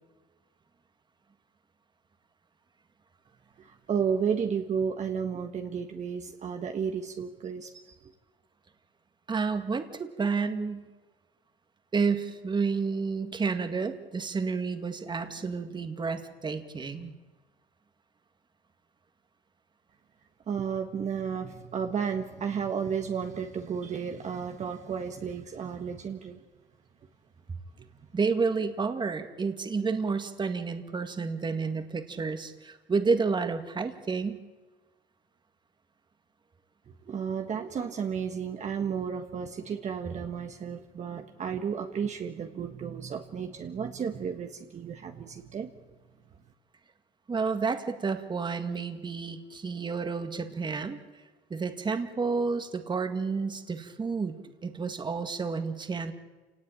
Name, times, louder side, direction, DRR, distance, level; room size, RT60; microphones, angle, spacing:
voice 1, 3.6-8.1 20.5-26.4 37.1-45.7, right 7 dB, 45° right, 4 dB, 1.6 m, -33 dB
voice 2, 9.3-10.9 11.9-17.1 28.1-34.4 47.3-51.0 51.5-56.1, right 4 dB, 25° right, 8 dB, 2.0 m, -30 dB
28.0 x 18.5 x 9.0 m, 1.3 s
cardioid pair, 110°, 17 cm